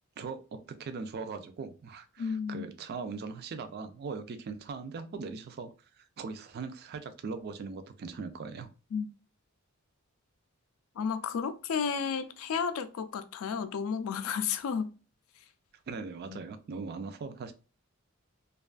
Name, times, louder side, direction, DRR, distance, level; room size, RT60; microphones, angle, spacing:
voice 1, 0.2-5.7 6.0-8.7 15.9-17.5, right 4 dB, 50° right, 0.3 m, -40 dB
voice 2, 2.2-2.7 8.9-9.1 11.0-14.9 16.3-16.4, left 6 dB, 70° left, 0.3 m, -32 dB
2.4 x 2.3 x 2.3 m
head